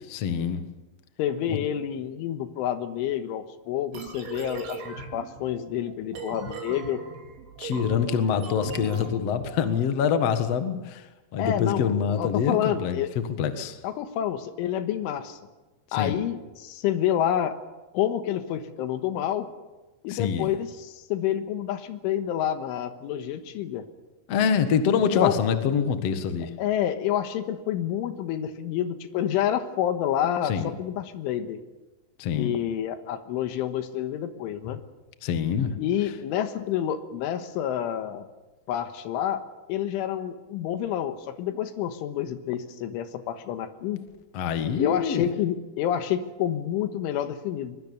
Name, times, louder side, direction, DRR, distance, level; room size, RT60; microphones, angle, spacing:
voice 1, 0.1-0.6 1.5-1.6 7.6-11.0 11.3-13.8 16.0-16.2 20.1-20.5 24.3-26.5 30.4-30.7 32.2-32.5 35.2-35.7 44.3-45.3, left 7 dB, 65° left, 8 dB, 1.5 m, -25 dB
voice 2, 1.2-7.0 11.4-13.1 13.8-15.5 15.9-17.5 17.9-19.5 20.0-23.8 25.2-25.4 26.6-31.6 32.4-34.8 35.8-38.3 38.7-39.4 39.7-44.1 44.8-47.8, left 10 dB, 90° left, 9 dB, 3.8 m, -28 dB
sound 1, 3.9-9.7, right 4 dB, 80° right, 5.2 m, -39 dB
23.0 x 22.5 x 7.1 m, 1.1 s
omnidirectional pair, 5.5 m